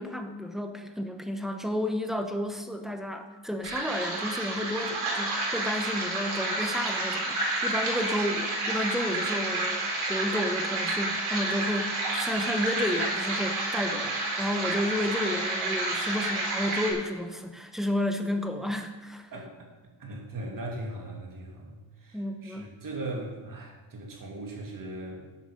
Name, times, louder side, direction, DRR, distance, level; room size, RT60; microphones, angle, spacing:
voice 1, 0.0-19.3 22.1-22.8, left 1 dB, ahead, 5 dB, 0.8 m, -32 dB
sound 1, 3.6-16.9, right 2 dB, 75° right, 3.9 m, -30 dB
voice 2, 19.3-19.7 20.0-25.3, right 2 dB, 40° right, 0 dB, 2.6 m, -39 dB
12.5 x 8.4 x 5.1 m, 1.2 s
cardioid pair, 150°, 48 cm